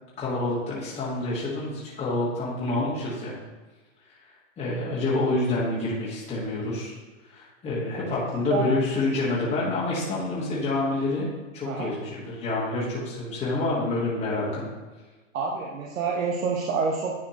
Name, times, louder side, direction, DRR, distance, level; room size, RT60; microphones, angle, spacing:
voice 1, 0.2-3.3 4.1-4.2 4.6-6.9 7.2-11.3 11.5-14.7, left 2 dB, 15° left, -8 dB, 1.5 m, -27 dB
voice 2, 15.3-17.2, right 5 dB, 80° right, -2 dB, 1.1 m, -27 dB
10.0 x 4.2 x 3.0 m, 1.3 s
hypercardioid pair, 135°, 39 cm